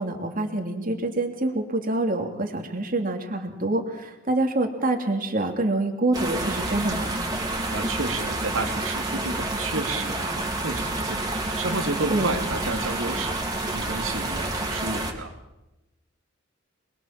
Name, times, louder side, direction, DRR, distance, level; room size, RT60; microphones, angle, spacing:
voice 1, 0.0-7.1 12.1-12.4, right 2 dB, 45° right, 3 dB, 3.1 m, -26 dB
sound 1, 6.1-15.1, right 2 dB, 20° right, 4.2 m, -29 dB
voice 2, 7.4-13.4 13.7-15.3, right 3 dB, 85° right, 3 dB, 2.9 m, -31 dB
27.0 x 22.5 x 7.6 m, 0.96 s
head